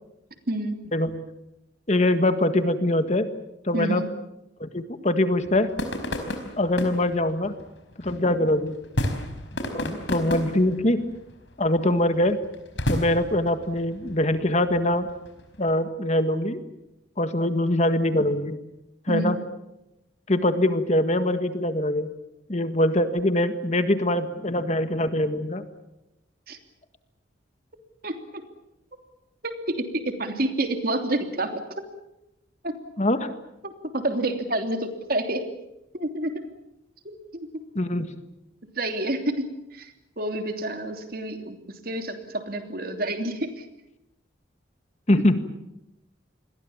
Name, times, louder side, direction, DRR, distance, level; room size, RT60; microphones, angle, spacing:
voice 1, 0.5-0.9 3.7-4.1 19.1-19.3 26.5-26.6 28.0-28.5 29.4-31.8 32.6-32.8 33.6-35.5 35.9-36.4 37.0-37.6 38.7-43.6, right 1 dB, 55° right, 6 dB, 3.1 m, -29 dB
voice 2, 1.9-3.3 3.7-4.0 4.6-5.7 6.6-7.5 8.0-8.8 9.7-11.0 11.6-12.4 12.9-15.1 15.6-16.6 17.2-18.6 19.1-19.3 20.3-22.1 22.5-25.6 33.0-33.3 37.7-38.1 45.1-45.4, left 1 dB, 40° left, 9 dB, 1.7 m, -23 dB
sound 1, 5.4-15.7, left 1 dB, 80° left, 4.6 m, -33 dB
28.5 x 22.0 x 7.3 m, 0.90 s
head